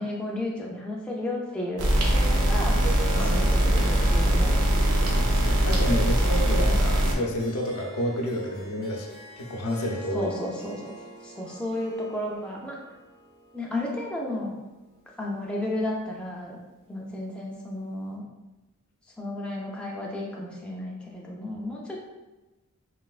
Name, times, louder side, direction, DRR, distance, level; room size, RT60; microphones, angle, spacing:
voice 1, 0.0-2.8 3.1-4.7 6.4-6.8 10.1-10.9 11.2-12.8 13.5-14.6 15.2-16.6 16.9-18.2 19.2-22.0, left 1 dB, 5° left, -3 dB, 0.4 m, -33 dB
sound 1, 1.8-7.2, right 1 dB, 80° right, 0.6 m, -22 dB
Harp, 2.7-15.3, right 2 dB, 45° right, 0.9 m, -44 dB
voice 2, 3.1-3.6 5.0-10.3, equal, 85° left, 0 dB, 0.6 m, -30 dB
3.2 x 2.9 x 2.3 m, 1.1 s
head